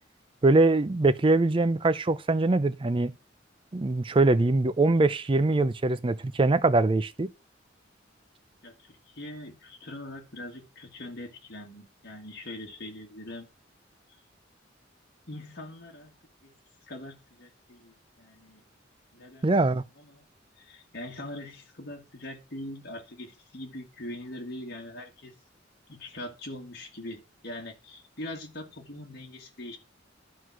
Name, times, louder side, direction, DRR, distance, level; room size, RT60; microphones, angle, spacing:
voice 1, 0.4-3.1 3.7-7.3 19.4-19.8, right 2 dB, 25° right, 0.5 m, -23 dB
voice 2, 8.6-13.5 15.3-16.1 16.4-16.5 16.9-18.6 19.1-19.5 20.0-20.3 20.6-25.3 25.9-29.8, left 1 dB, 55° left, 1.9 m, -42 dB
11.5 x 4.6 x 6.1 m
head